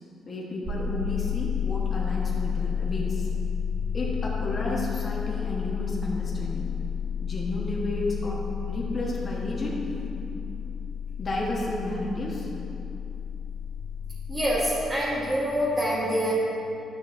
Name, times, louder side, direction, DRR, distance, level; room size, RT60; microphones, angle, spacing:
voice 1, 0.3-3.3 3.9-6.7 7.2-8.4 8.7-9.8 10.1-10.3 11.2-12.5, left 1 dB, 40° left, -4 dB, 1.3 m, -32 dB
sound 1, 0.6-14.5, left 7 dB, 50° right, 1.3 m, -31 dB
voice 2, 14.3-16.3, equal, 25° right, -8 dB, 1.6 m, -26 dB
11.0 x 6.7 x 2.7 m, 2.8 s
cardioid pair, 90°, 0 cm